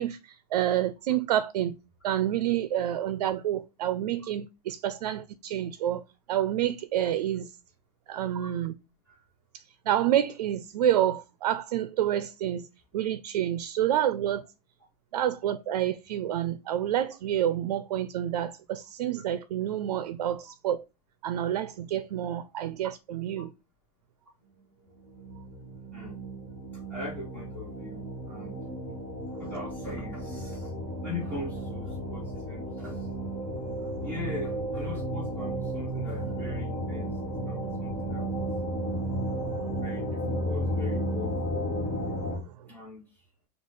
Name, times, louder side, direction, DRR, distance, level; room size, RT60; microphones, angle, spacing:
voice 1, 0.0-1.8 2.0-6.0 6.3-7.5 8.1-8.7 9.5-12.7 12.9-14.4 15.1-20.8 21.2-23.5 39.6-39.7 42.3-42.7, right 11 dB, 90° right, 0.4 m, -28 dB
sound 1, 25.0-42.4, right 1 dB, 25° left, 1.5 m, -33 dB
voice 2, 26.9-28.6 29.4-33.1 34.0-38.5 39.8-41.3 42.7-43.1, left 3 dB, 10° left, 1.6 m, -41 dB
4.8 x 2.4 x 3.7 m
supercardioid pair, 165°, 20 cm